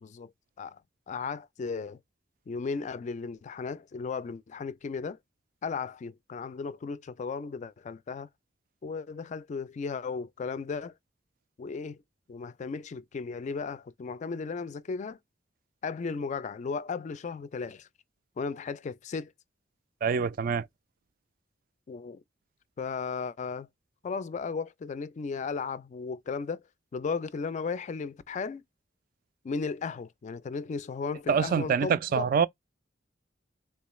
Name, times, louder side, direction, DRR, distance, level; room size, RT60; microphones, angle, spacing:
voice 1, 1.1-2.0 2.5-5.2 5.6-8.3 8.8-10.9 11.6-12.0 12.3-15.2 15.8-17.9 18.4-19.3 21.9-22.2 22.8-23.7 24.0-26.6 26.9-28.6 29.4-32.3, left 5 dB, 40° left, 0.3 m, -35 dB
voice 2, 20.0-20.7 31.3-32.5, right 6 dB, 50° right, 0.3 m, -25 dB
3.6 x 2.3 x 3.0 m
head